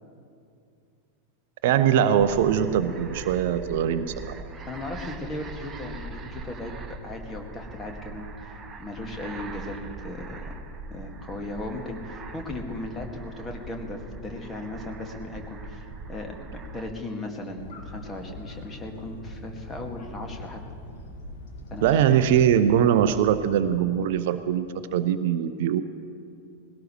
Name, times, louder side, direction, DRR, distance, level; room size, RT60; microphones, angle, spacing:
voice 1, 1.6-4.1 21.8-25.8, right 9 dB, 50° right, 12 dB, 0.5 m, -22 dB
sound 1, 2.2-16.9, right 3 dB, 20° right, 1.0 m, -41 dB
voice 2, 4.6-6.7 7.0-10.6 10.9-20.6 21.7-22.2, left 2 dB, 20° left, 2 dB, 2.0 m, -37 dB
sound 2, 17.6-23.7, left 1 dB, 55° left, 2.0 m, -42 dB
20.0 x 17.5 x 3.2 m, 2.4 s
figure-of-eight pair, 90°, 0 cm